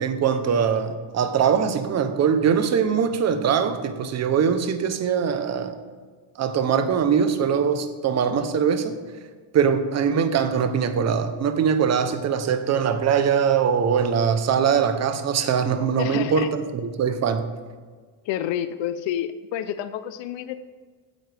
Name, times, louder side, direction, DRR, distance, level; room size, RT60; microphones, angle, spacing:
voice 1, 0.0-5.8 6.4-9.0 9.5-17.5, right 7 dB, 35° right, 9 dB, 0.9 m, -22 dB
voice 2, 16.0-16.5 18.3-20.7, left 10 dB, 80° left, 12 dB, 0.7 m, -29 dB
16.0 x 9.3 x 3.4 m, 1.5 s
cardioid pair, 175°, 43 cm